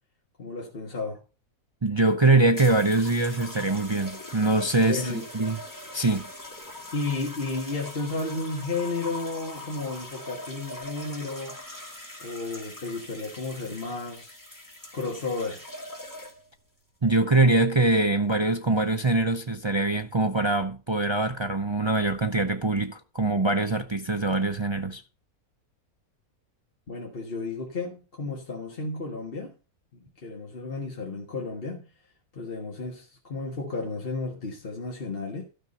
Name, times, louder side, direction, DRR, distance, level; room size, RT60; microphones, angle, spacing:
voice 1, 0.4-1.2 4.9-5.2 6.9-11.6 12.2-14.4 14.9-15.6 26.9-29.5 29.9-31.9 32.3-35.4, left 3 dB, 40° left, 1.8 m, -33 dB
voice 2, 1.8-5.0 5.3-5.6 5.9-6.3 17.0-25.0, right 2 dB, 35° right, 0.4 m, -23 dB
sound 1, 2.5-16.6 17.4-17.8, left 1 dB, 10° left, 2.4 m, -42 dB
13.0 x 6.0 x 5.3 m
omnidirectional pair, 1.6 m